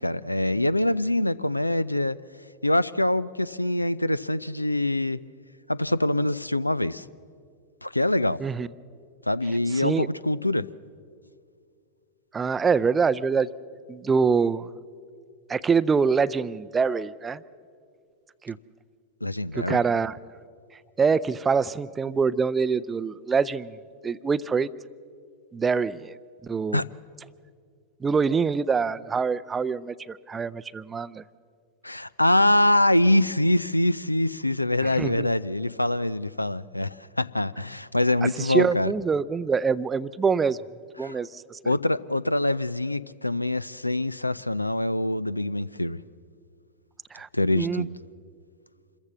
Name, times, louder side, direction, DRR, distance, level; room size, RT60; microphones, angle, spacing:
voice 1, 0.0-2.2 2.6-5.2 5.7-7.0 7.8-8.4 9.3-10.7 19.2-19.8 26.7-26.9 31.8-38.9 41.0-41.2 41.7-46.0 47.3-47.9, left 1 dB, 85° left, 19 dB, 0.4 m, -24 dB
voice 2, 9.8-10.1 12.3-13.5 13.9-14.7 15.5-17.4 18.4-18.6 19.5-20.2 21.0-23.8 24.0-24.7 25.5-26.2 26.4-26.8 28.0-31.2 34.9-35.3 38.4-40.6 41.0-41.7 47.1-47.3 47.6-47.9, right 5 dB, 15° right, 17 dB, 0.5 m, -25 dB
26.5 x 14.5 x 7.2 m, 2.2 s
figure-of-eight pair, 90°, 0 cm